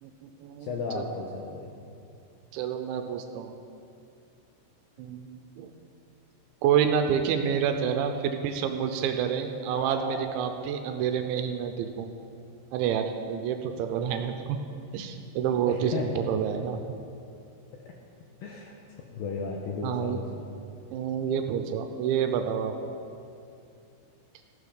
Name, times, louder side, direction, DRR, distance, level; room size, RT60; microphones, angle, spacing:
voice 1, 0.0-1.0 2.5-3.5 5.0-5.7 6.6-12.1 12.7-14.6 14.9-16.8 19.8-20.2 20.9-22.9, right 8 dB, 85° right, 6 dB, 3.0 m, -28 dB
voice 2, 0.6-1.7 15.7-16.3 17.9-18.0 18.4-18.7 19.1-20.4, left 4 dB, 85° left, 0 dB, 2.0 m, -34 dB
sound 1, 9.7-10.3, equal, 55° left, 1.5 m, -36 dB
14.5 x 11.5 x 5.1 m, 2.6 s
omnidirectional pair, 5.3 m